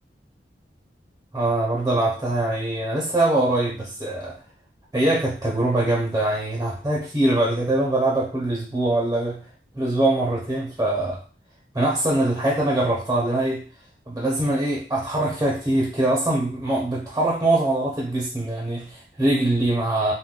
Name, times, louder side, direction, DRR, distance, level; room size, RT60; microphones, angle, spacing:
voice 1, 1.3-4.4 4.9-9.4 9.7-11.2 11.7-13.6 14.1-20.1, right 1 dB, 15° right, -3 dB, 0.5 m, -23 dB
3.6 x 2.2 x 2.3 m, 0.38 s
head